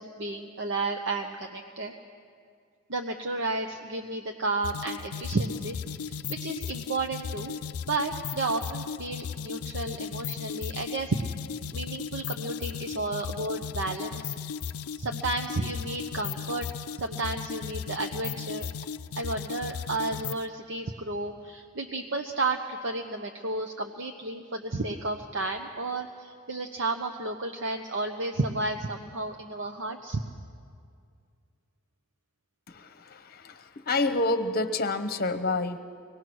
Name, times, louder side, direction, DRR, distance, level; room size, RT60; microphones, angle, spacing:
voice 1, 0.0-1.9 2.9-7.5 7.9-11.2 11.7-14.3 15.0-16.7 17.0-18.7 19.1-30.2, right 2 dB, 55° right, 4 dB, 0.9 m, -32 dB
sound 1, 4.6-20.5, left 6 dB, 90° left, 0.4 m, -36 dB
voice 2, 32.7-35.8, left 2 dB, 45° left, 10 dB, 1.0 m, -28 dB
24.5 x 18.5 x 6.2 m, 2.2 s
head